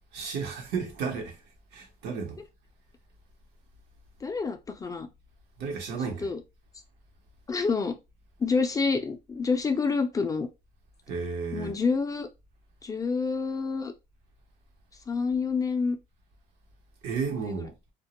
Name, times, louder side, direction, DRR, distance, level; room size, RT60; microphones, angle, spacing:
voice 1, 0.1-1.4 1.7-2.4 5.6-6.3 11.1-11.8 17.0-17.7, right 5 dB, 85° right, 0.9 m, -33 dB
voice 2, 4.2-5.1 6.0-6.4 7.5-8.0 8.4-10.5 11.5-12.3 12.8-13.9 15.1-16.0 17.3-17.7, left 4 dB, 20° left, 0.3 m, -28 dB
2.2 x 2.0 x 2.8 m
cardioid pair, 110°, 17 cm